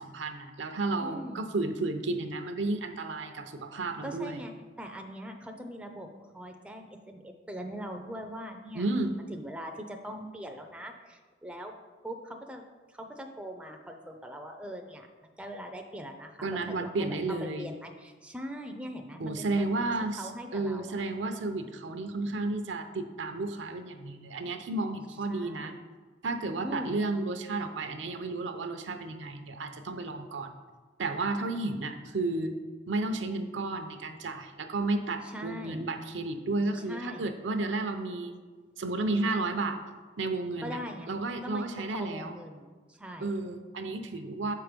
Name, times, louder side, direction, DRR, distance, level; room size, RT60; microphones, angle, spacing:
voice 1, 0.0-4.4 8.7-9.1 16.4-17.7 19.2-25.7 26.2-30.5 31.0-32.6 32.9-38.4 38.8-39.8 40.2-40.8 41.1-42.3 43.2-44.5, right 2 dB, 75° right, 7 dB, 0.7 m, -32 dB
voice 2, 1.0-1.4 4.0-6.1 6.3-8.9 9.3-11.7 12.0-12.6 12.9-15.1 15.4-17.2 17.6-19.8 20.2-21.0 25.3-25.7 26.6-26.9 35.2-35.9 36.7-37.2 39.5-39.6 40.6-41.2 41.4-43.3, equal, 5° right, 3 dB, 0.5 m, -41 dB
6.8 x 4.6 x 5.1 m, 1.4 s
head